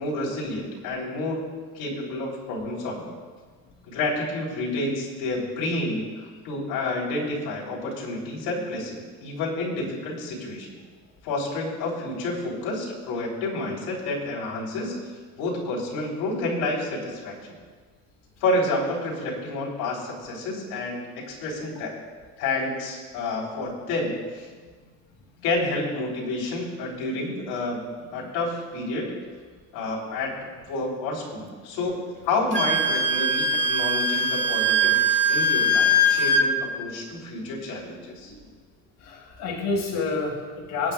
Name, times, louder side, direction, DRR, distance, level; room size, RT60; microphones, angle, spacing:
voice 1, 0.0-3.2 3.9-10.8 11.2-14.9 15.4-17.6 18.4-21.0 21.3-22.0 22.4-24.5 25.4-27.8 28.1-29.1 29.7-30.4 30.7-32.0 32.2-38.3, left 2 dB, 85° left, -4 dB, 3.5 m, -29 dB
Wind instrument woodwind instrument, 32.5-36.5, equal, 30° right, 1.0 m, -21 dB
voice 2, 39.0-40.9, left 3 dB, 60° left, -2 dB, 2.1 m, -29 dB
24.0 x 8.7 x 2.4 m, 1.5 s
cardioid pair, 120°, 37 cm